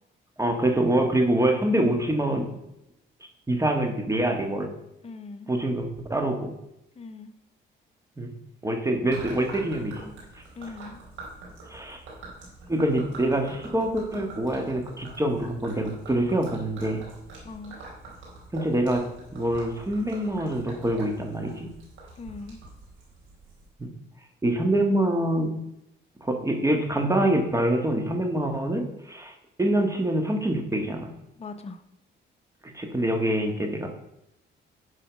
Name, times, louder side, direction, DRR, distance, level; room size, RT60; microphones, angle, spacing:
voice 1, 0.4-2.5 3.5-4.7 5.5-6.5 8.2-8.3 8.6-10.0 11.7-12.0 12.7-17.0 18.5-19.1 19.3-21.7 23.8-23.9 24.4-25.5 26.2-31.1 32.7-33.9, right 1 dB, 15° right, 4 dB, 1.6 m, -25 dB
voice 2, 5.0-5.5 7.0-7.3 10.6-11.0 17.4-17.8 22.2-22.6 31.4-31.8, left 3 dB, 30° left, 6 dB, 0.8 m, -40 dB
Gurgling / Liquid, 9.1-23.7, right 2 dB, 85° right, 4.2 m, -44 dB
11.0 x 5.0 x 5.2 m, 0.84 s
cardioid pair, 90°, 20 cm